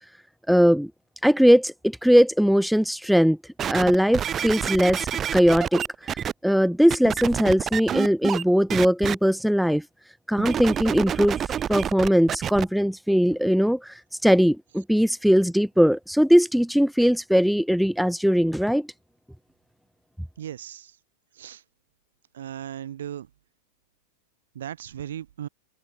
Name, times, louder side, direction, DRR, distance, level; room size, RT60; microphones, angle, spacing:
voice 1, 0.5-0.9 1.2-3.4 3.7-5.8 6.4-9.8 10.3-11.4 11.7-18.9, equal, ahead, 0.8 m, -20 dB
sound 1, 3.6-6.3 6.9-8.4 8.7-9.1 10.4-12.6 13.3-13.4, right 9 dB, 25° right, 1.9 m, -28 dB
voice 2, 20.4-21.0 21.3-21.6 22.3-23.3 24.6-25.5, right 10 dB, 60° right, 6.9 m, -36 dB
open air
figure-of-eight pair, 90°, 0 cm